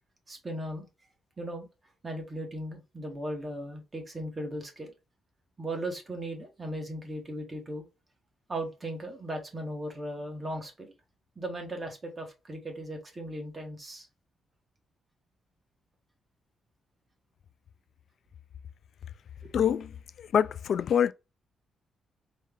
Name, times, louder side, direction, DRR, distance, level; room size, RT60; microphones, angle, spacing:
voice 1, 0.3-0.9 1.4-1.7 2.0-4.9 5.6-7.8 8.5-10.9 11.4-14.1 19.4-19.5, right 1 dB, 25° right, 1.4 m, -37 dB
voice 2, 19.5-19.9 20.3-21.1, left 8 dB, 60° left, 0.3 m, -24 dB
4.3 x 2.4 x 3.6 m
cardioid pair, 125°, 0 cm